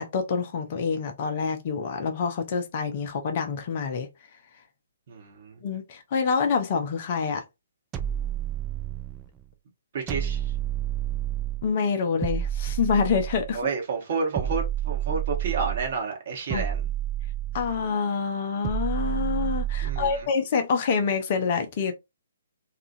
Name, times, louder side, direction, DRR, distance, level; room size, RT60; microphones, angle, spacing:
voice 1, 0.0-4.1 5.6-7.4 11.6-13.6 16.5-16.6 17.5-21.9, left 5 dB, 40° left, 0.6 m, -26 dB
voice 2, 5.1-5.6 9.9-10.5 13.5-16.9 19.8-20.3, right 4 dB, 45° right, 1.1 m, -30 dB
sound 1, 7.9-9.3 10.1-11.7 12.2-13.6 14.4-16.0 16.5-17.9 18.6-20.3, right 11 dB, 15° right, 0.4 m, -29 dB
2.8 x 2.4 x 2.6 m
figure-of-eight pair, 130°, 0 cm